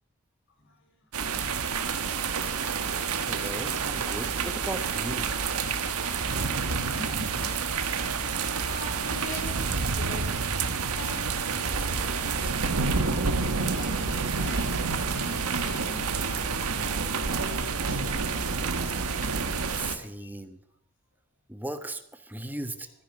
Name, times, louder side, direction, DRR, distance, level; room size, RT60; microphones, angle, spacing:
sound 1, 1.1-20.0, right 5 dB, 80° right, 1.3 m, -28 dB
voice 1, 2.2-2.9 3.3-5.4 19.7-20.6 21.5-22.9, right 1 dB, 10° right, 10 dB, 0.9 m, -38 dB
voice 2, 7.0-8.0 8.6-10.4 10.9-19.3 19.8-20.3 22.8-22.9, left 1 dB, 55° left, 4 dB, 3.2 m, -44 dB
14.0 x 10.0 x 7.2 m, 0.73 s
head